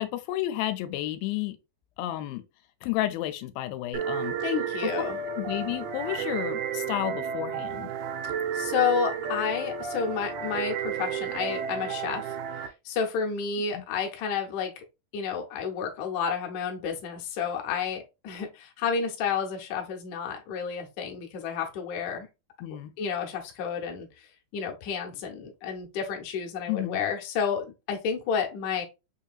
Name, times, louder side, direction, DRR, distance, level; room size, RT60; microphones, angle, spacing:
voice 1, 0.0-1.6 2.0-2.4 2.8-4.4 4.8-4.9 5.4-7.9 13.7-13.8 22.6-22.9 26.7-27.0, left 14 dB, 85° left, 2.4 m, -31 dB
sound 1, 3.9-12.7, right 7 dB, 90° right, 2.6 m, -32 dB
voice 2, 4.4-5.2 8.5-12.4 12.9-14.8 15.1-22.3 23.0-24.1 24.5-28.8, left 6 dB, 70° left, 1.9 m, -30 dB
5.7 x 2.7 x 2.3 m
omnidirectional pair, 4.1 m